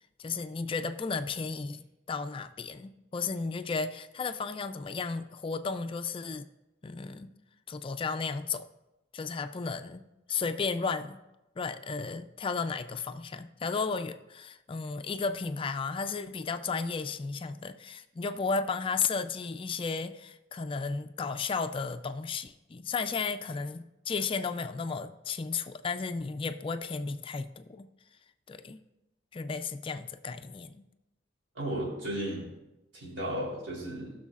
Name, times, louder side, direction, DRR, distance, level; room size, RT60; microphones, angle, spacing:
voice 1, 0.2-6.5 6.8-7.3 7.7-8.7 9.1-11.2 11.6-27.9 28.5-28.8 29.3-30.9, left 4 dB, 30° left, 10 dB, 0.4 m, -34 dB
voice 2, 31.5-32.5 32.9-34.1, right 1 dB, 90° right, -4 dB, 3.3 m, -34 dB
18.5 x 6.3 x 2.4 m, 0.97 s
head